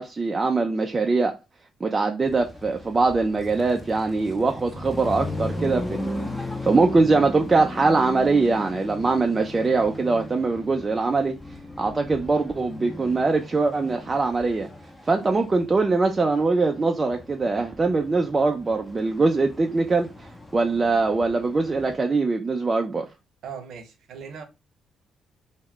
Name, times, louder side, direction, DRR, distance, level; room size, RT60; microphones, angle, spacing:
voice 1, 0.0-1.3 1.8-11.4 11.8-14.7 15.0-23.1, right 3 dB, 30° right, 0.3 m, -22 dB
sound 1, 2.2-21.9, left 1 dB, 10° left, 0.6 m, -37 dB
voice 2, 23.4-24.4, right 6 dB, 75° right, 0.7 m, -38 dB
2.3 x 2.1 x 3.5 m
cardioid pair, 90°, 0 cm